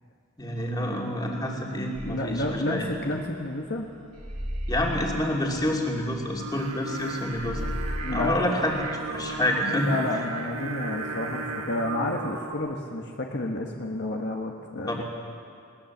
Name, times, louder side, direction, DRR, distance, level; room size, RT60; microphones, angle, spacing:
voice 1, 0.4-2.9 4.7-7.6 8.1-9.9 14.9-15.0, left 1 dB, 20° left, -1 dB, 2.8 m, -28 dB
voice 2, 2.0-3.8 8.0-8.5 9.8-15.0, left 1 dB, 55° left, 1 dB, 1.5 m, -30 dB
sound 1, 2.0-9.5, equal, 35° right, 2.5 m, -36 dB
Singing, 6.4-12.5, right 2 dB, 85° right, 2.3 m, -35 dB
21.0 x 19.0 x 7.3 m, 2.3 s
head